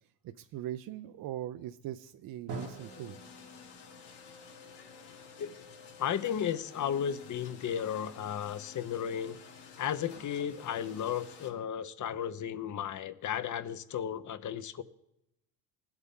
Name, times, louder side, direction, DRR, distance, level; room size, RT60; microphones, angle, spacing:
voice 1, 0.2-3.2, right 12 dB, 45° right, 9 dB, 0.5 m, -40 dB
sound 1, 2.5-11.5, left 6 dB, 55° left, 2.2 m, -51 dB
Drum, 2.5-6.2, right 3 dB, 90° right, 1.9 m, -47 dB
voice 2, 6.0-9.4 9.8-14.8, left 9 dB, 40° left, 15 dB, 0.8 m, -34 dB
19.5 x 8.1 x 3.7 m, 0.82 s
supercardioid pair, 95°, 48 cm